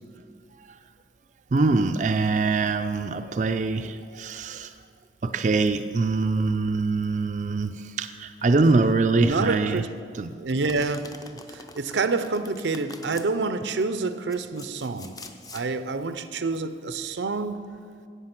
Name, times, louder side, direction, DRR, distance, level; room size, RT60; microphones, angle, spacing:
voice 1, 1.5-4.7 5.2-9.8 10.1-10.3, right 3 dB, 45° right, 7 dB, 0.4 m, -23 dB
voice 2, 9.2-9.9 10.4-11.1 11.7-15.1 15.5-17.6, right 3 dB, 90° right, 11 dB, 0.6 m, -27 dB
Domestic sounds home sounds, 10.6-13.3 14.0-15.7, left 3 dB, 20° left, 0.6 m, -45 dB
13.0 x 8.3 x 5.9 m, 2.2 s
head